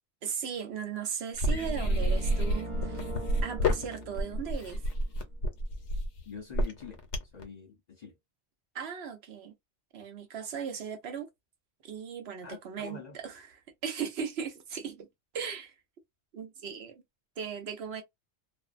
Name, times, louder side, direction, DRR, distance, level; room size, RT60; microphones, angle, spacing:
voice 1, 0.2-3.0 3.4-4.8 8.7-9.5 9.9-11.3 11.8-13.6 13.8-15.1 15.3-15.7 16.3-17.0 17.4-18.0, right 7 dB, 70° right, 0.9 m, -37 dB
sound 1, 1.3-7.4, equal, 75° left, 1.0 m, -29 dB
sound 2, 1.5-5.4, right 1 dB, 40° right, 0.5 m, -42 dB
voice 2, 6.3-7.0 7.3-8.2 12.4-13.2, left 6 dB, 50° left, 0.6 m, -45 dB
2.5 x 2.1 x 2.4 m
omnidirectional pair, 1.2 m